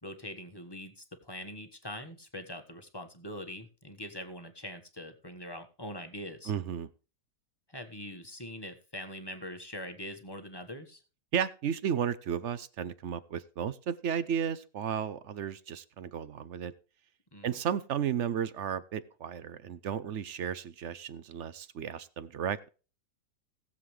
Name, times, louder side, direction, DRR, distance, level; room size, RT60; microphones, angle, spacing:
voice 1, 0.0-6.5 7.7-11.0 17.3-17.6, left 1 dB, 15° left, 6 dB, 1.2 m, -43 dB
voice 2, 6.5-6.9 11.3-16.7 17.4-22.7, right 8 dB, 60° right, 16 dB, 0.8 m, -33 dB
19.0 x 7.5 x 3.2 m, 0.35 s
omnidirectional pair, 1.7 m